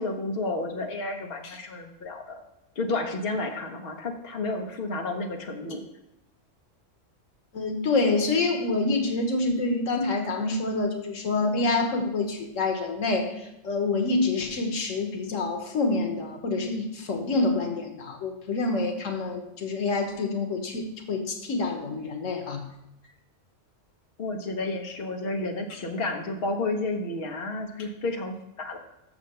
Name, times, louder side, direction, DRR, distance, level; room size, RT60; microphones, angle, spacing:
voice 1, 0.0-2.4 2.8-5.8 24.2-28.8, left 2 dB, 50° left, 3 dB, 1.2 m, -31 dB
voice 2, 7.5-22.6, left 3 dB, 90° left, 4 dB, 1.5 m, -27 dB
6.6 x 5.8 x 6.7 m, 0.88 s
omnidirectional pair, 1.3 m